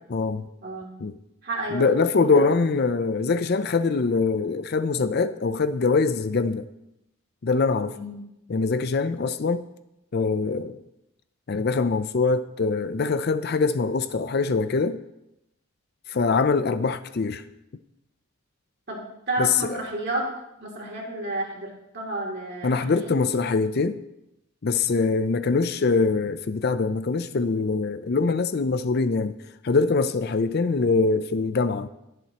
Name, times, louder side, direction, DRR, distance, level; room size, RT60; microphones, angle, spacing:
voice 1, 0.1-0.5 1.0-1.2 1.7-6.7 7.4-8.0 8.5-9.6 10.1-10.8 11.5-15.0 16.1-17.4 19.4-19.8 22.6-24.0 24.6-29.4 29.6-31.9, left 4 dB, 45° left, 0.4 m, -23 dB
voice 2, 0.6-1.0 1.4-1.9 2.3-2.5 7.9-8.2 18.9-20.3 20.6-23.2, right 2 dB, 50° right, 2.7 m, -31 dB
21.0 x 7.4 x 2.9 m
head